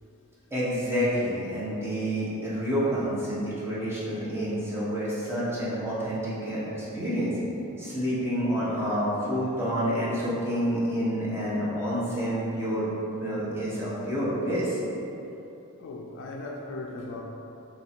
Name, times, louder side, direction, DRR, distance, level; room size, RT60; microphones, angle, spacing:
voice 1, 0.5-6.6 6.9-7.3 7.8-12.9 13.2-14.8, equal, 10° right, -9 dB, 0.8 m, -28 dB
voice 2, 8.6-9.6 15.8-17.2, left 2 dB, 55° left, 0 dB, 0.3 m, -40 dB
3.1 x 2.6 x 4.2 m, 2.8 s
head